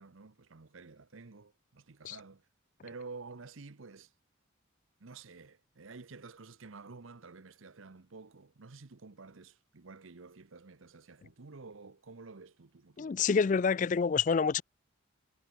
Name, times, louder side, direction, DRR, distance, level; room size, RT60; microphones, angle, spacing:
voice 1, 0.0-2.5 2.8-4.1 5.0-13.2, right 4 dB, 75° right, 0.9 m, -50 dB
voice 2, 13.0-14.6, left 5 dB, 40° left, 0.3 m, -27 dB
head